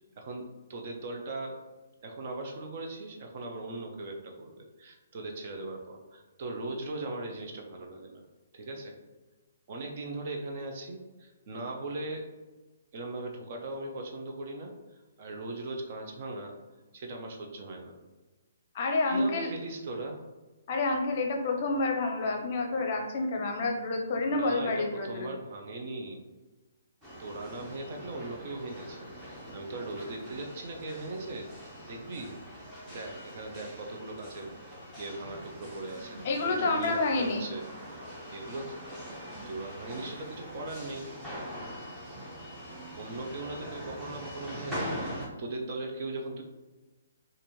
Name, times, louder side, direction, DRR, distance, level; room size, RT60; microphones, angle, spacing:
voice 1, 0.2-1.6 2.0-8.2 8.5-9.0 9.7-12.3 12.9-16.5 16.9-18.0 19.0-20.2 24.3-26.2 27.2-32.3 32.9-37.6 38.3-38.8 39.4-41.1 42.6-46.4, right 2 dB, 45° right, 2 dB, 0.6 m, -39 dB
voice 2, 18.7-19.5 20.7-25.3 36.2-37.5, left 3 dB, 45° left, 2 dB, 0.6 m, -29 dB
sound 1, 27.0-45.3, equal, 10° right, 1.0 m, -43 dB
4.2 x 2.6 x 3.1 m, 1.2 s
hypercardioid pair, 150°, 0 cm